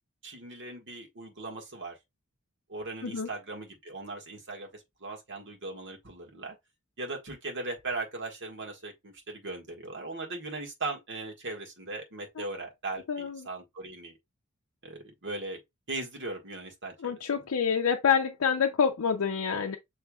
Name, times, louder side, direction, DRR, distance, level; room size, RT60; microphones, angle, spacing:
voice 1, 0.2-2.0 2.7-6.6 7.0-14.2 14.8-15.6 15.9-16.9 17.3-17.4, right 2 dB, 55° right, 1.6 m, -38 dB
voice 2, 13.1-13.5 17.0-19.8, left 7 dB, 75° left, 0.5 m, -27 dB
6.7 x 3.2 x 2.3 m
head